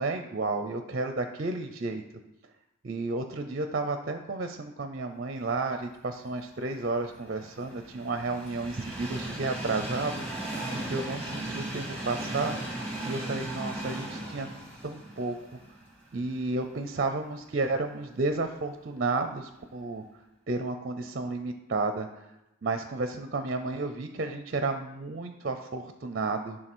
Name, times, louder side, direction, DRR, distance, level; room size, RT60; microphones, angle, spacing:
voice 1, 0.0-2.0 2.8-10.2 10.9-12.6 13.0-14.5 14.8-15.4 16.1-20.0 20.5-22.1 22.6-26.6, right 3 dB, 45° right, 7 dB, 0.5 m, -32 dB
Train, 6.6-16.7 17.1-17.2 18.3-18.4, right 1 dB, 5° left, 1.9 m, -37 dB
10.5 x 3.8 x 6.1 m, 0.94 s
head